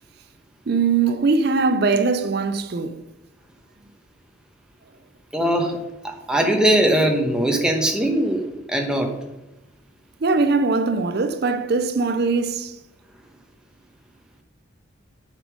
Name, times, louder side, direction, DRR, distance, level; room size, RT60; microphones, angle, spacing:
voice 1, 0.7-3.0 10.2-12.8, right 4 dB, 50° right, 0.5 m, -21 dB
voice 2, 5.3-9.1, right 1 dB, 5° right, 1.1 m, -21 dB
8.2 x 5.2 x 5.1 m
head